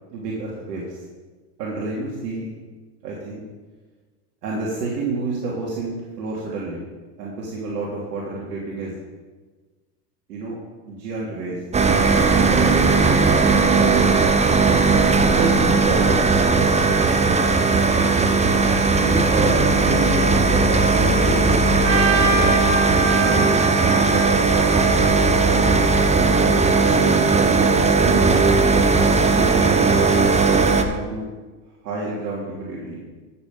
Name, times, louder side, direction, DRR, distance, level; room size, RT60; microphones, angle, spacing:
voice 1, 0.1-1.0 1.6-2.5 3.0-3.4 4.4-6.8 7.2-9.0 10.3-10.6 10.9-11.6 12.4-13.3 15.2-16.2 19.0-22.3 23.2-25.7 26.4-28.4 28.9-31.3 31.8-33.0, right 3 dB, 75° right, -5 dB, 3.2 m, -29 dB
sound 1, 11.7-30.8, right 4 dB, 15° right, 0.9 m, -17 dB
Trumpet, 21.8-26.0, right 2 dB, 50° right, 3.4 m, -25 dB
13.0 x 8.1 x 5.4 m, 1.3 s
hypercardioid pair, 100°, 50 cm